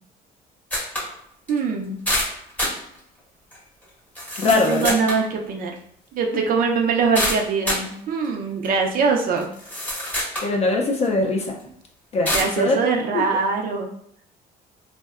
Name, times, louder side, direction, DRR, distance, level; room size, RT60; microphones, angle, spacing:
sound 1, 0.7-1.1 1.5-1.6 2.1-2.8 3.5-3.6 4.2-5.2 7.1-7.9 8.6-8.7 9.4-10.5 11.0-11.1 12.3-12.6, left 1 dB, 10° left, 0.7 m, -26 dB
voice 1, 1.5-2.0 4.4-5.7 6.1-9.5 12.3-13.9, right 5 dB, 55° right, 2 dB, 0.4 m, -22 dB
voice 2, 4.4-5.0 6.3-6.4 10.4-11.6 12.1-12.7 13.1-13.4, left 3 dB, 40° left, 1 dB, 0.4 m, -22 dB
2.6 x 2.1 x 2.4 m, 0.70 s
cardioid pair, 110°, 17 cm